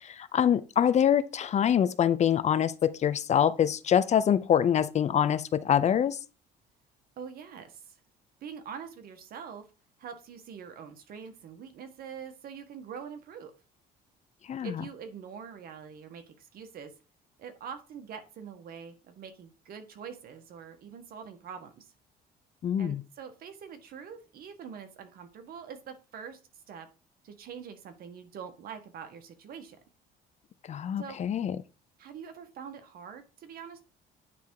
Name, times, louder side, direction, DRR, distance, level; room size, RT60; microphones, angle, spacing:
voice 1, 0.0-6.2 14.5-14.7 22.6-23.0 30.7-31.6, left 9 dB, 40° left, 0.6 m, -25 dB
voice 2, 7.2-8.0 8.4-9.6 10.0-13.5 14.6-16.9 17.4-21.9 22.8-26.4 26.7-26.9 27.2-29.8 31.0-31.2 32.0-33.8, right 7 dB, 60° right, 1.5 m, -44 dB
9.4 x 3.5 x 4.7 m
cardioid pair, 110°, 17 cm